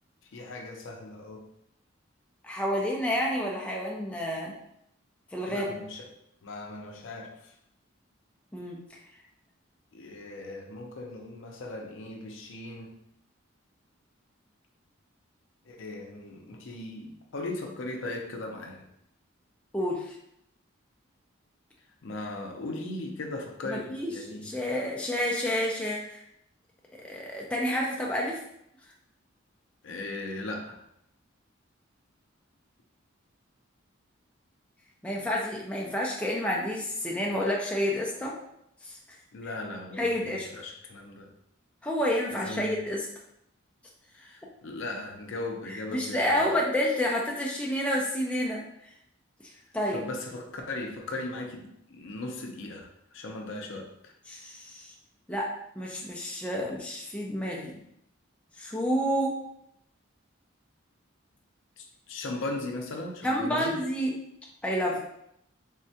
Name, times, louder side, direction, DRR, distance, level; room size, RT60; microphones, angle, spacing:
voice 1, 0.3-1.4 5.5-6.1 6.4-7.5 9.9-12.9 15.6-18.8 22.0-24.6 29.8-30.8 39.3-41.3 42.3-42.8 44.1-46.6 49.9-54.1 61.8-63.8, left 2 dB, 70° left, 2 dB, 0.5 m, -38 dB
voice 2, 2.4-4.5 5.3-5.7 8.5-9.0 19.7-20.2 23.7-26.2 27.0-28.4 35.0-38.3 38.8-39.0 40.0-40.5 41.8-43.1 45.7-48.6 49.7-50.0 54.3-54.9 55.3-55.5 55.8-57.8 58.6-59.4 63.2-64.1 64.6-65.0, equal, 5° left, -3 dB, 0.3 m, -29 dB
3.6 x 2.1 x 2.7 m, 0.76 s
head